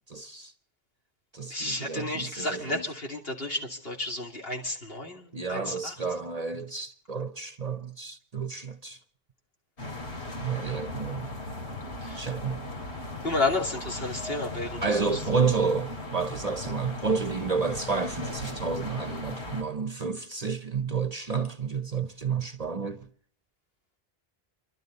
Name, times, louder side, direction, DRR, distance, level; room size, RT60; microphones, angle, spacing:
voice 1, 0.1-0.5 1.3-2.8 5.3-9.0 10.4-11.3 12.1-12.7 14.8-23.1, right 5 dB, 40° right, 0.8 m, -30 dB
voice 2, 1.5-5.9 12.0-12.2 13.2-15.2, left 2 dB, 65° left, 3.1 m, -32 dB
sound 1, 9.8-19.6, left 2 dB, 85° left, 3.6 m, -37 dB
29.0 x 12.5 x 4.0 m
omnidirectional pair, 1.1 m